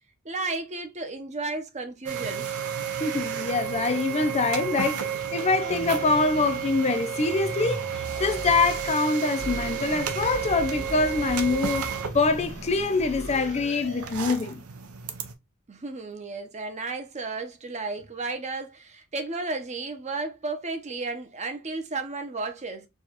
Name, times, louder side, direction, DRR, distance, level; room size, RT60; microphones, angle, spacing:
voice 1, 0.2-2.5 15.7-22.9, right 3 dB, 30° right, 0.7 m, -33 dB
sound 1, 2.1-15.3, right 8 dB, 80° right, 0.6 m, -32 dB
voice 2, 3.0-11.9 12.1-14.6, left 3 dB, 30° left, 0.4 m, -25 dB
sound 2, 5.6-6.9 7.2-8.9 9.3-14.5, right 1 dB, 50° right, 2.7 m, -38 dB
4.6 x 2.3 x 2.9 m
head